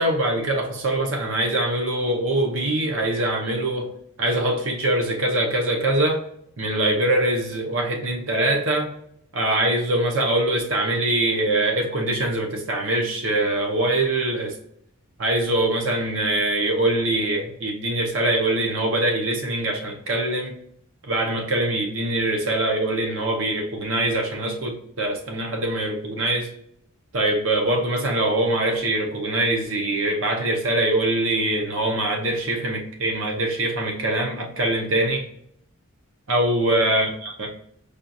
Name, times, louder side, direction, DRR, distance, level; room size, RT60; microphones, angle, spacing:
voice 1, 0.0-3.9 4.2-6.2 6.6-8.9 9.3-14.6 15.2-20.6 21.0-26.5 27.1-35.2 36.3-37.1, right 1 dB, 60° right, 1 dB, 0.7 m, -23 dB
5.0 x 2.4 x 2.7 m, 0.70 s
head